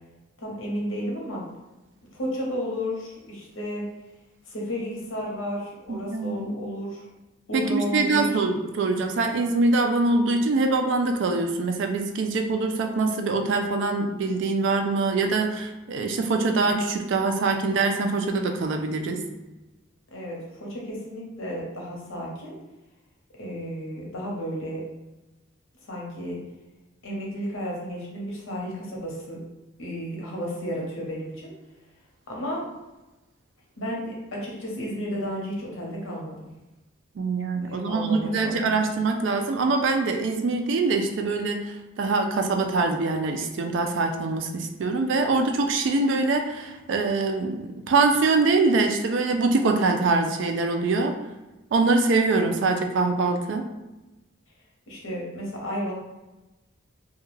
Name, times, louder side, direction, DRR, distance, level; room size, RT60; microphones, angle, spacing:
voice 1, 0.4-1.4 2.1-3.9 4.4-7.1 7.5-8.4 20.1-22.5 23.4-24.8 25.8-26.4 27.0-29.4 29.8-31.5 32.3-32.6 33.8-36.4 37.6-38.8 54.9-55.9, equal, 75° left, -2 dB, 0.8 m, -32 dB
voice 2, 5.9-6.5 7.5-19.2 37.2-51.2 51.7-53.7, right 3 dB, 60° right, 4 dB, 0.3 m, -24 dB
2.3 x 2.2 x 3.1 m, 1.1 s
head